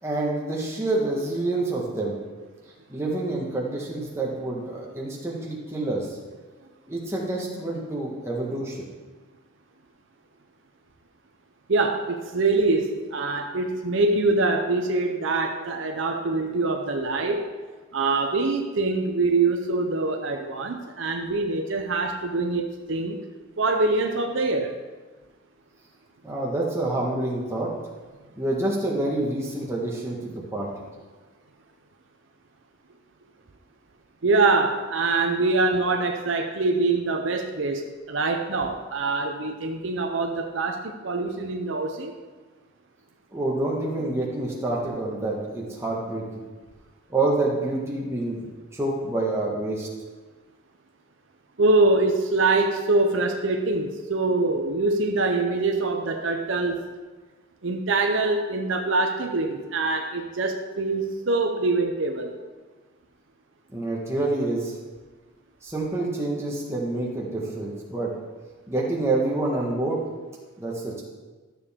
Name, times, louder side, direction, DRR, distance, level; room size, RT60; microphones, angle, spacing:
voice 1, 0.0-2.1 2.9-6.2 6.9-8.9 26.2-27.7 28.4-30.7 43.3-46.2 47.1-49.9 63.7-64.7 65.6-68.1 68.7-70.0 70.6-71.0, right 2 dB, 10° right, -3 dB, 1.5 m, -27 dB
voice 2, 11.7-17.5 17.9-23.2 23.6-24.7 34.2-42.1 51.6-56.8 57.6-62.3, right 3 dB, 60° right, 3 dB, 0.7 m, -24 dB
12.5 x 6.8 x 3.6 m, 1.3 s
head